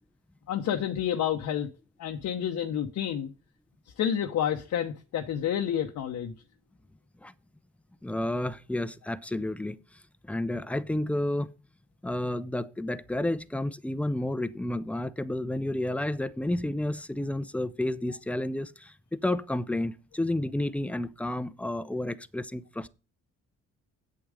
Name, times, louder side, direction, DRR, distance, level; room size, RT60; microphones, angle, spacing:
voice 1, 0.5-1.7 2.0-3.3 3.9-6.3, left 9 dB, 70° left, 1.1 m, -29 dB
voice 2, 8.0-9.8 10.3-11.5 12.0-22.9, left 1 dB, 5° left, 0.6 m, -31 dB
8.6 x 7.9 x 5.0 m
cardioid pair, 90°, 30 cm